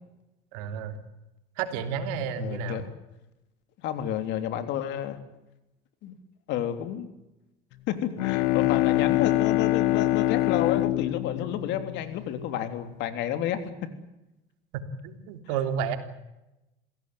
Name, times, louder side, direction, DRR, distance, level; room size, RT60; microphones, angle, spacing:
voice 1, 0.5-1.0 1.6-2.8 15.0-16.0, right 7 dB, 85° right, 7 dB, 3.3 m, -31 dB
voice 2, 2.4-2.9 3.8-5.2 6.0-6.1 6.5-7.1 7.9-13.6, left 10 dB, 65° left, 8 dB, 3.5 m, -30 dB
Bowed string instrument, 8.0-12.7, left 16 dB, 85° left, 0.9 m, -25 dB
27.5 x 17.0 x 9.3 m, 0.96 s
supercardioid pair, 110°, 20 cm